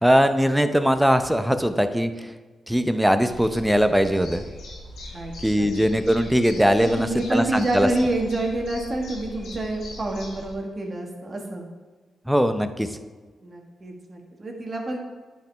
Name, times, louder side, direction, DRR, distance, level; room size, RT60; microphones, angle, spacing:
voice 1, 0.0-2.3 2.7-4.4 5.4-7.9 12.3-12.9, equal, 5° right, 9 dB, 0.7 m, -20 dB
sound 1, 3.2-10.5, left 1 dB, 85° left, 1.6 m, -40 dB
voice 2, 5.1-5.8 6.8-11.6 13.4-15.0, right 2 dB, 40° right, 1 dB, 1.7 m, -28 dB
10.0 x 5.1 x 3.5 m, 1.4 s
cardioid pair, 60°, 0 cm